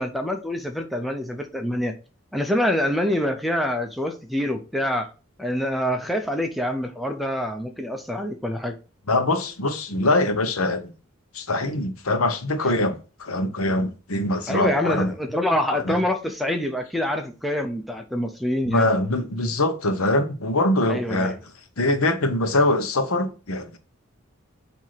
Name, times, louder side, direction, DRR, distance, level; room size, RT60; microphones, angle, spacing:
voice 1, 0.0-1.9 2.3-5.1 5.4-8.7 14.5-18.9 20.9-21.4, left 1 dB, ahead, 0.6 m, -26 dB
voice 2, 9.1-10.9 11.3-15.1 15.7-15.9 18.7-21.4 21.8-23.8, left 2 dB, 85° left, 1.0 m, -23 dB
7.6 x 2.9 x 5.8 m
head